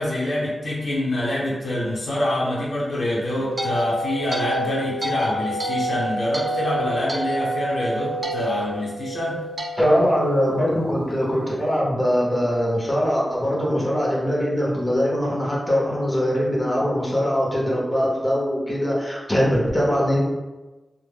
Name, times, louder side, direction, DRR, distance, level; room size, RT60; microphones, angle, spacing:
voice 1, 0.0-9.5, left 1 dB, 70° left, -5 dB, 0.7 m, -25 dB
sound 1, 3.0-11.4, right 1 dB, 35° right, 0.4 m, -29 dB
voice 2, 9.8-20.3, equal, 15° left, -5 dB, 0.7 m, -22 dB
2.1 x 2.0 x 3.3 m, 1.2 s
wide cardioid pair, 90°, 0 cm